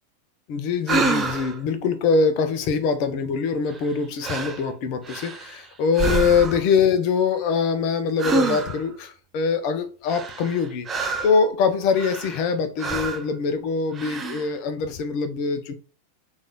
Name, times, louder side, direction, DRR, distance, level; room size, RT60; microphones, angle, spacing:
voice 1, 0.5-10.9 11.2-15.7, left 5 dB, 45° left, 0.6 m, -23 dB
sound 1, 0.9-1.6 3.7-3.9 4.2-4.6 5.0-5.6 5.9-6.7 8.2-8.9 10.1-11.4 11.9-12.5 12.8-13.3 13.9-14.5, right 3 dB, 20° right, 0.5 m, -27 dB
3.2 x 2.6 x 3.6 m
figure-of-eight pair, 90°, 0 cm